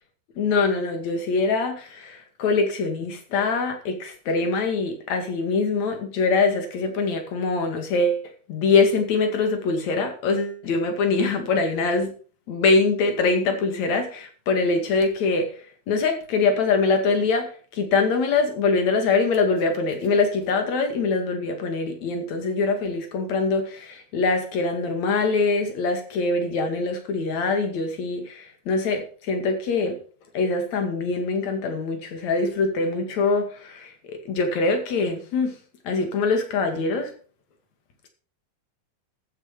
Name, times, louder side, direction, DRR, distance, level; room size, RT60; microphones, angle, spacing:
voice 1, 0.4-12.1 12.5-30.0 30.3-35.5 35.8-37.1, left 4 dB, 50° left, 3.2 m, -23 dB
14.0 x 9.2 x 5.1 m
omnidirectional pair, 4.4 m